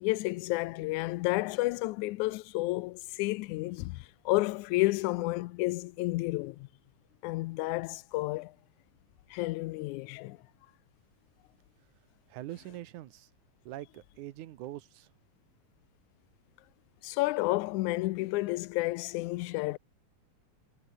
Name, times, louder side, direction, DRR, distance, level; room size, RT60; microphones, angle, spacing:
voice 1, 0.0-6.7 7.2-8.5 9.3-10.4 17.0-19.8, left 20 dB, 85° left, 2.0 m, -31 dB
voice 2, 12.3-13.3 13.7-15.1, right 14 dB, 85° right, 2.5 m, -43 dB
omnidirectional pair, 3.4 m